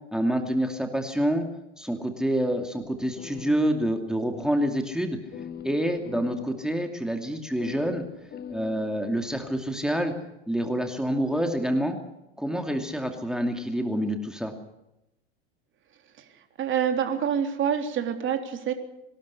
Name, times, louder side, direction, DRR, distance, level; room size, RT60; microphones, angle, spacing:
voice 1, 0.1-1.5 1.8-5.2 5.6-8.0 8.5-10.1 10.5-12.0 12.4-14.5, equal, ahead, 4 dB, 2.6 m, -27 dB
sound 1, 2.8-4.1 4.4-4.5 5.3-6.6 7.6-9.6, left 8 dB, 30° left, 1.9 m, -42 dB
voice 2, 16.6-18.7, right 8 dB, 35° right, 5 dB, 3.7 m, -26 dB
24.5 x 13.0 x 9.8 m, 0.89 s
hypercardioid pair, 105°, 33 cm